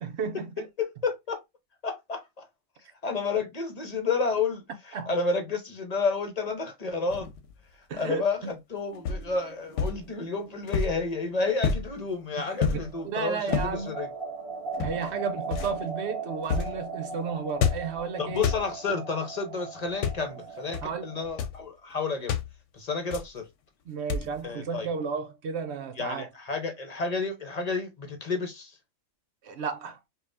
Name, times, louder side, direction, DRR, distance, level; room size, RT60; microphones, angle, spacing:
voice 1, 0.0-0.7 4.9-5.1 7.9-8.5 12.4-12.9 13.1-13.9 14.8-18.5 20.8-21.0 23.9-26.3 29.4-30.0, right 5 dB, 60° right, 0.9 m, -33 dB
voice 2, 0.8-1.4 1.8-2.4 3.0-7.3 7.9-14.1 18.2-22.4 22.7-23.4 24.4-24.9 26.0-28.7, left 4 dB, 40° left, 0.6 m, -30 dB
sound 1, 7.1-7.5 9.0-9.3 9.7-10.0 10.7-11.1 11.6-11.9 12.6-12.9 13.5-13.8 14.7-15.1 15.5-15.8 16.4-16.8 17.6-18.0 18.4-18.7 19.9-20.3 20.7-20.9 21.2-21.6 22.3-22.5 23.1-23.4 24.1-24.4, left 6 dB, 65° left, 0.9 m, -29 dB
sound 2, 8.9-12.5 12.8-21.3, right 4 dB, 30° right, 0.7 m, -39 dB
5.2 x 2.3 x 2.5 m
omnidirectional pair, 1.4 m